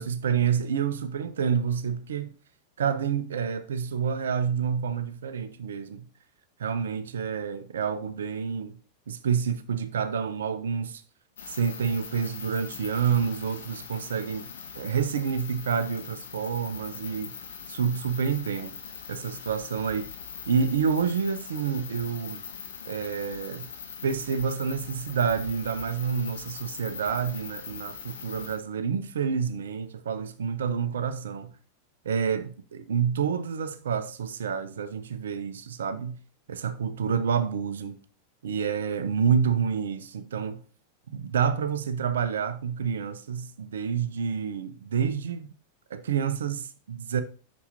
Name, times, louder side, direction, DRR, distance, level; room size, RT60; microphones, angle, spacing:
voice 1, 0.0-2.3 2.8-6.1 6.6-8.7 9.1-11.0 11.5-14.5 14.8-17.3 17.7-18.8 19.1-20.1 20.5-22.4 22.9-23.7 24.0-31.5 32.0-36.2 36.5-38.0 38.4-40.6 41.1-45.5 45.9-47.2, right 7 dB, 65° right, 0.8 m, -28 dB
sound 1, 11.4-28.6, left 7 dB, 65° left, 1.4 m, -41 dB
8.3 x 6.5 x 2.7 m
figure-of-eight pair, 90°, 0 cm